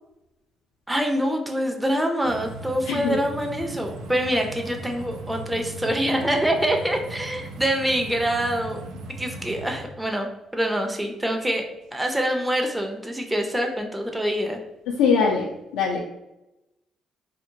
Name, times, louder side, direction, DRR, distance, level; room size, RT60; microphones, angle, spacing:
voice 1, 0.9-8.8 9.2-10.3 10.5-11.6 11.9-14.6, equal, 10° right, 3 dB, 0.4 m, -25 dB
sound 1, 2.2-9.9, right 2 dB, 75° right, 0.4 m, -38 dB
voice 2, 2.9-3.2 14.9-16.0, left 5 dB, 90° left, -1 dB, 0.3 m, -22 dB
2.8 x 2.1 x 2.6 m, 0.93 s
supercardioid pair, 60°, 0 cm